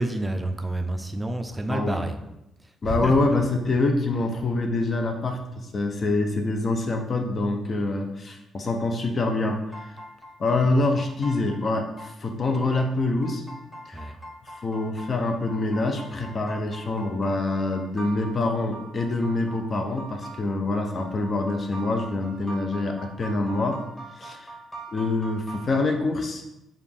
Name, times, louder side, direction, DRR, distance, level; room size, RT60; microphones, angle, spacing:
voice 1, 0.0-2.2 2.9-3.1 13.9-14.1, right 1 dB, 15° right, 6 dB, 0.4 m, -28 dB
voice 2, 1.7-2.0 2.8-9.6 10.4-13.4 13.9-14.1 14.5-23.8 24.2-24.5 24.9-26.4, left 2 dB, 40° left, 4 dB, 0.6 m, -25 dB
sound 1, 9.5-25.9, right 2 dB, 5° left, 0.8 m, -43 dB
4.9 x 2.5 x 3.6 m, 0.90 s
cardioid pair, 90°, 0 cm